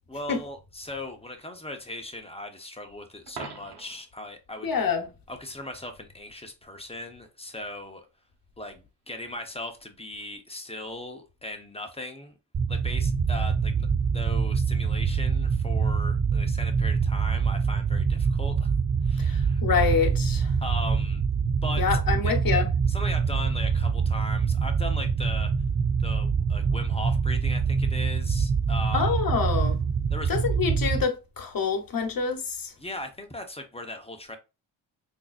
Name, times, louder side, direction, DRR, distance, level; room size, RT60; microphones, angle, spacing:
voice 1, 0.1-4.7 5.3-8.1 8.6-12.3 12.7-18.7 19.0-19.6 20.6-21.2 21.6-21.9 22.2-22.3 22.9-25.5 26.0-29.2 30.1-30.3 32.8-34.4, left 1 dB, 10° left, 0.9 m, -38 dB
Coin (dropping), 3.3-4.1 10.2-10.4, right 4 dB, 55° right, 1.2 m, -41 dB
voice 2, 4.6-5.0 19.2-20.5 21.8-22.7 28.9-29.8 30.3-32.7, left 6 dB, 45° left, 1.1 m, -26 dB
sound 1, 12.5-31.0, right 6 dB, 25° right, 0.5 m, -25 dB
3.7 x 2.8 x 2.5 m
supercardioid pair, 50°, 47 cm